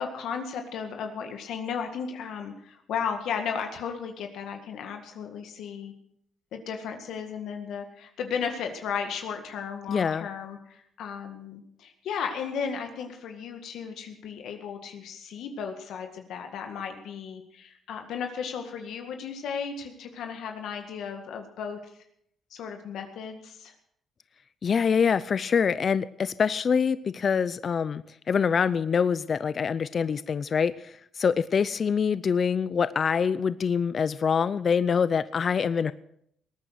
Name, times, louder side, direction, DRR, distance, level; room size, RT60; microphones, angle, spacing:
voice 1, 0.0-5.9 6.5-21.8 22.5-23.7, left 6 dB, 80° left, 5 dB, 1.8 m, -35 dB
voice 2, 9.9-10.3 24.6-35.9, left 6 dB, 45° left, 16 dB, 0.6 m, -25 dB
20.0 x 9.1 x 6.4 m, 0.71 s
cardioid pair, 90°, 0 cm